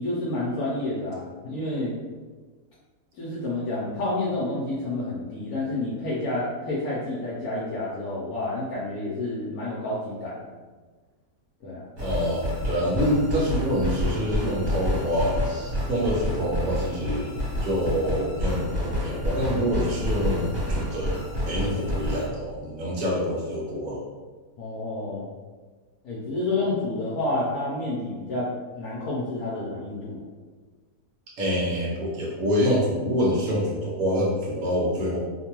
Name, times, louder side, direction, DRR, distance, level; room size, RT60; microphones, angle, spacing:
voice 1, 0.0-1.9 3.2-10.4 11.6-11.9 24.6-25.3 26.0-30.2, left 2 dB, 75° left, -7 dB, 1.0 m, -29 dB
sound 1, 12.0-22.3, left 1 dB, 45° right, 1.4 m, -29 dB
voice 2, 12.0-21.2 21.5-24.0 31.4-35.2, equal, 65° right, -4 dB, 1.1 m, -26 dB
2.9 x 2.2 x 2.9 m, 1.4 s
omnidirectional pair, 1.8 m